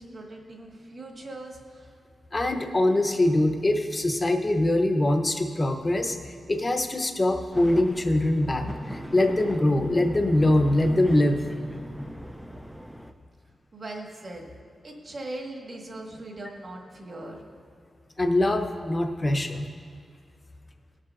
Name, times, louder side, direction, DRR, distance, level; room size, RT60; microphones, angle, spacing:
voice 1, 0.0-2.0 13.7-14.5 14.8-17.4, right 2 dB, 40° right, -1 dB, 1.5 m, -40 dB
voice 2, 2.3-6.2 6.5-11.4 18.2-19.7, left 1 dB, 25° left, 5 dB, 0.8 m, -23 dB
sound 1, 7.5-13.1, equal, 5° right, 0.4 m, -40 dB
19.0 x 7.4 x 2.5 m, 2.2 s
wide cardioid pair, 135°, 0 cm